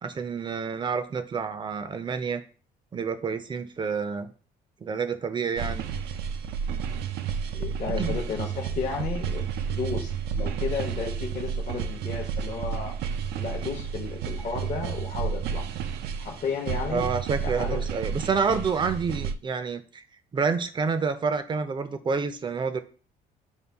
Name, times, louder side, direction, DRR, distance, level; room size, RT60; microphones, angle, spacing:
voice 1, 0.0-2.4 2.9-4.3 4.8-5.9 8.0-8.2 16.9-20.0 20.3-22.8, right 5 dB, 30° right, 10 dB, 0.5 m, -28 dB
sound 1, 5.6-19.3, right 7 dB, 80° right, 0.4 m, -31 dB
voice 2, 7.5-13.0 13.4-15.7 16.2-17.1 17.4-17.9, left 5 dB, 45° left, -1 dB, 0.8 m, -33 dB
5.4 x 2.3 x 3.4 m, 0.39 s
cardioid pair, 110°, 17 cm